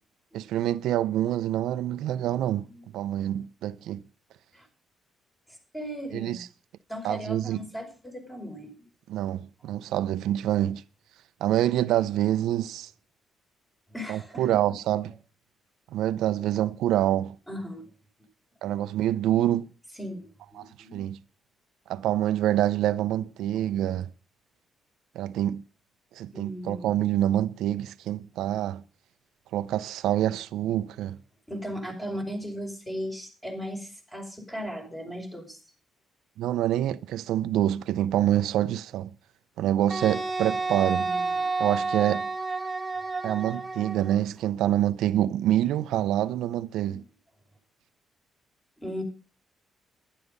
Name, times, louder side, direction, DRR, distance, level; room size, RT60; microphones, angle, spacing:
voice 1, 0.3-2.7 2.9-4.0 6.1-6.5 7.0-7.6 9.1-10.8 11.4-12.9 14.1-15.1 15.9-17.4 18.6-19.7 20.6-20.7 20.9-21.2 21.9-24.1 25.1-25.6 26.1-28.8 29.5-31.2 36.4-39.1 39.6-41.1 41.6-42.3 43.2-47.0, right 12 dB, 85° right, 0.6 m, -26 dB
voice 2, 5.7-6.4 6.9-8.7 13.9-14.8 16.5-16.6 17.5-17.9 20.0-21.1 23.7-23.9 26.3-27.1 31.5-35.6 41.0-41.5 46.8-47.0 48.8-49.0, equal, 10° left, 5.0 m, -37 dB
Wind instrument woodwind instrument, 39.9-44.2, right 3 dB, 20° right, 2.7 m, -30 dB
11.5 x 11.0 x 5.2 m
cardioid pair, 125°, 0 cm